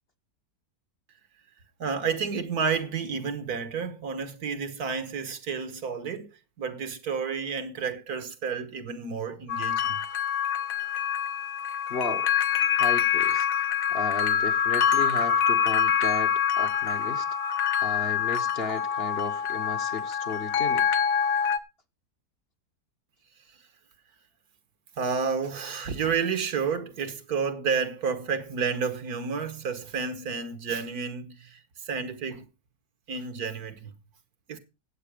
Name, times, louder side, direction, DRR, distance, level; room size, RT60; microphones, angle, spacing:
voice 1, 1.8-6.3 6.6-10.0 25.0-32.5 33.1-33.9 34.5-34.6, right 6 dB, 70° right, 1.8 m, -30 dB
sound 1, 9.5-21.6, left 8 dB, 60° left, 1.3 m, -25 dB
voice 2, 11.9-12.3 12.8-13.5 13.9-17.3 17.8-20.9, left 4 dB, 40° left, 1.1 m, -34 dB
15.0 x 8.2 x 5.0 m
omnidirectional pair, 1.7 m